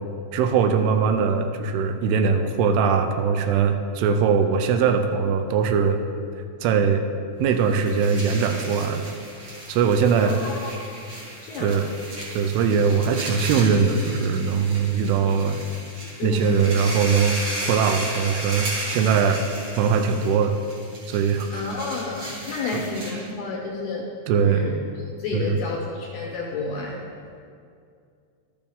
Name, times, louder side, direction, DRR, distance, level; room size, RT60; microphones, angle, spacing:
voice 1, 0.3-6.0 6.6-7.0 7.4-9.1 9.7-10.4 11.6-11.9 12.3-15.6 16.2-19.4 19.8-20.6 21.1-21.7 22.7-22.8 23.1-23.3 24.3-24.7 25.3-25.6, right 6 dB, 85° right, 6 dB, 2.6 m, -21 dB
sound 1, 7.5-23.3, right 1 dB, 50° right, 2.8 m, -35 dB
voice 2, 11.4-11.7 16.2-16.7 21.5-24.1 24.4-24.7 25.2-27.0, left 3 dB, 75° left, -2 dB, 2.2 m, -30 dB
12.5 x 6.9 x 3.5 m, 2.4 s
omnidirectional pair, 4.5 m